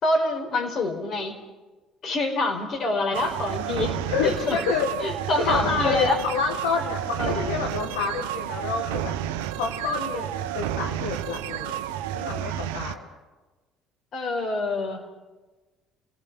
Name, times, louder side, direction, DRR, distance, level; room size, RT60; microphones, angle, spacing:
voice 1, 0.0-1.4 2.0-4.6 5.0-6.2 7.2-7.5 14.1-15.0, left 2 dB, 55° left, 3 dB, 4.8 m, -26 dB
sound 1, 3.1-12.9, right 11 dB, 80° right, 0.9 m, -31 dB
voice 2, 3.9-4.9 5.4-9.1 9.6-11.8 12.1-13.1, left 5 dB, 80° left, 3 dB, 1.8 m, -28 dB
28.0 x 18.5 x 6.0 m, 1.2 s
hypercardioid pair, 55°, 0 cm